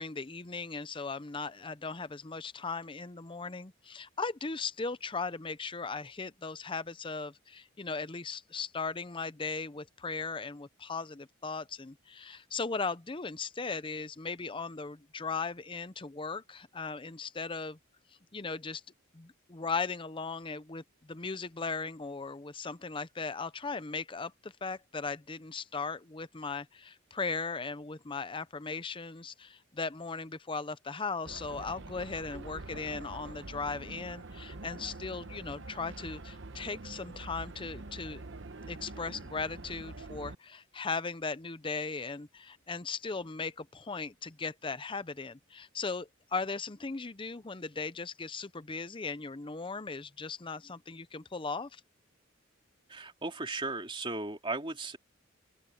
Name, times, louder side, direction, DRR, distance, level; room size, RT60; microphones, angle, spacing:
voice 1, 0.0-17.8 18.3-18.8 19.1-38.2 38.7-51.8, left 4 dB, 25° left, 0.7 m, -38 dB
sound 1, 31.3-40.4, right 2 dB, 60° right, 1.1 m, -45 dB
voice 2, 52.9-55.0, right 3 dB, 25° right, 3.0 m, -36 dB
open air
head